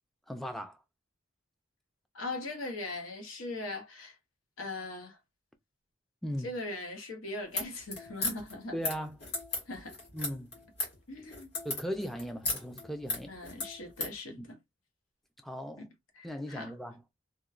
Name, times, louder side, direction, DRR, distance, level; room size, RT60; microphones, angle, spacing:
voice 1, 0.3-0.8 6.2-6.5 8.7-9.2 10.1-10.5 11.6-13.3 14.4-14.5 15.4-15.8 16.2-17.0, equal, ahead, 0.3 m, -38 dB
voice 2, 2.1-4.2 4.6-5.2 6.4-8.8 9.7-10.0 11.1-11.5 13.3-14.6 15.8-15.9 16.1-16.7, left 2 dB, 85° left, 0.9 m, -40 dB
sound 1, 7.4-14.2, left 2 dB, 55° left, 1.7 m, -36 dB
2.9 x 2.1 x 2.4 m
head